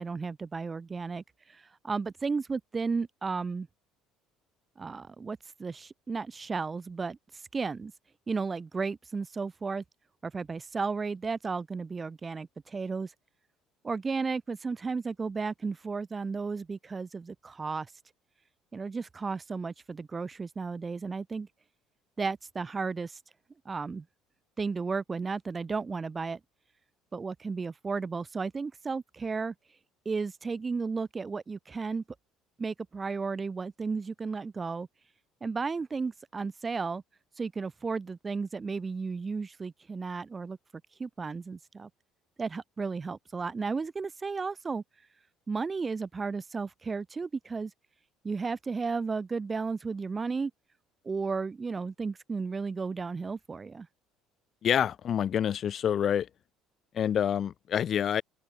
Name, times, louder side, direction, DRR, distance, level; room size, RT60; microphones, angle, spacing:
voice 1, 0.0-3.7 4.8-7.2 7.5-7.9 8.3-9.8 10.2-13.1 13.8-17.9 18.7-21.5 22.2-23.2 23.7-24.0 24.6-26.4 27.1-29.5 30.1-32.0 32.6-34.9 35.4-37.0 37.4-40.6 41.0-41.9 42.4-44.8 45.5-47.7 48.2-50.5 51.0-53.9, right 4 dB, 20° right, 0.4 m, -34 dB
voice 2, 54.6-56.3 56.9-58.2, left 9 dB, 40° left, 0.8 m, -27 dB
open air
cardioid pair, 135°, 0 cm